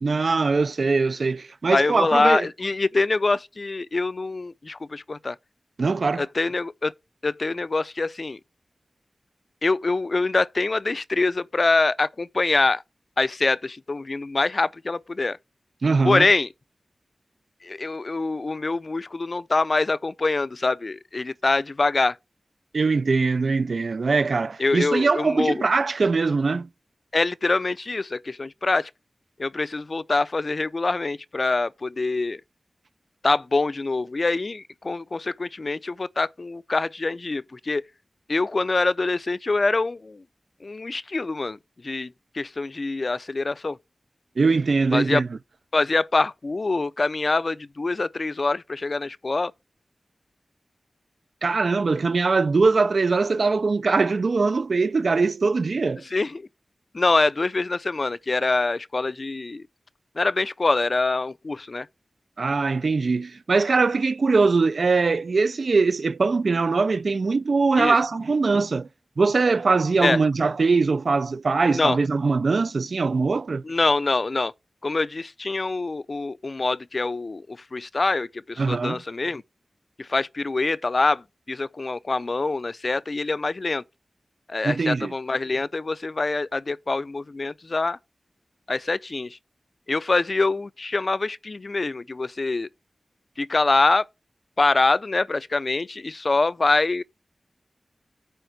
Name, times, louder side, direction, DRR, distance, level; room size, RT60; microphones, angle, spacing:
voice 1, 0.0-2.5 5.8-6.3 15.8-16.3 22.7-26.7 44.4-45.3 51.4-56.0 62.4-68.9 69.2-73.6 78.6-79.0 84.6-85.1, right 4 dB, 75° right, 0.4 m, -22 dB
voice 2, 1.7-5.4 6.2-6.9 7.2-8.4 9.6-12.8 13.2-15.4 16.0-16.5 17.6-22.2 24.6-25.7 27.1-28.9 29.4-32.4 33.2-37.9 38.3-40.2 40.6-41.6 41.8-43.8 44.9-45.2 45.7-49.5 56.1-56.5 56.9-59.7 60.2-61.9 67.8-68.0 70.0-70.2 71.6-72.0 73.6-74.5 74.8-79.4 80.0-83.8 84.5-88.0 88.7-89.4 89.9-92.7 93.4-94.0 94.6-97.0, left 3 dB, 50° left, 0.4 m, -24 dB
8.9 x 3.6 x 6.6 m
wide cardioid pair, 75°, 0 cm